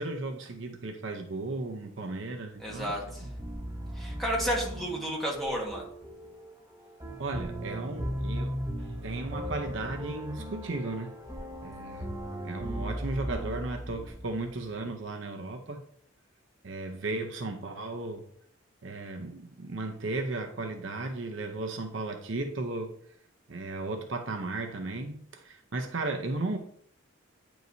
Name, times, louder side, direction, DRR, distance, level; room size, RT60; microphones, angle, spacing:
voice 1, 0.0-3.3 7.2-8.6 9.0-11.1 11.6-12.1 12.4-15.8 16.6-18.2 18.8-22.9 23.5-26.6, right 2 dB, 60° right, 0.7 m, -35 dB
voice 2, 2.6-3.2 4.0-5.8, equal, ahead, 1.4 m, -32 dB
sound 1, 2.6-14.7, equal, 15° right, 0.7 m, -37 dB
9.3 x 4.7 x 2.7 m
head